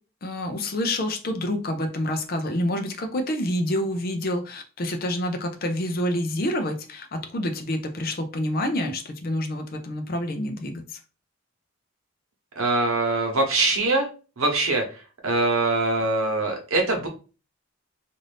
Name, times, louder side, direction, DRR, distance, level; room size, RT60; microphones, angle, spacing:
voice 1, 0.2-11.0, left 1 dB, 45° left, 6 dB, 0.5 m, -28 dB
voice 2, 12.6-14.1 14.4-14.8 15.2-17.1, right 2 dB, 85° right, 2 dB, 1.0 m, -23 dB
2.5 x 2.5 x 3.3 m, 0.34 s
head